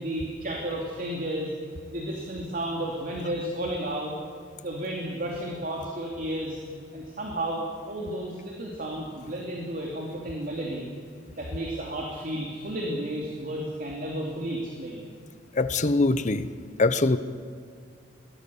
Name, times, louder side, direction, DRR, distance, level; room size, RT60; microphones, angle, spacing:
voice 1, 0.0-1.5 1.9-4.1 4.6-6.6 6.9-10.9 11.4-15.1, right 1 dB, 50° right, -1 dB, 2.9 m, -32 dB
voice 2, 15.6-16.5 16.8-17.2, left 3 dB, 40° left, 13 dB, 0.8 m, -22 dB
23.5 x 19.5 x 7.1 m, 2.1 s
head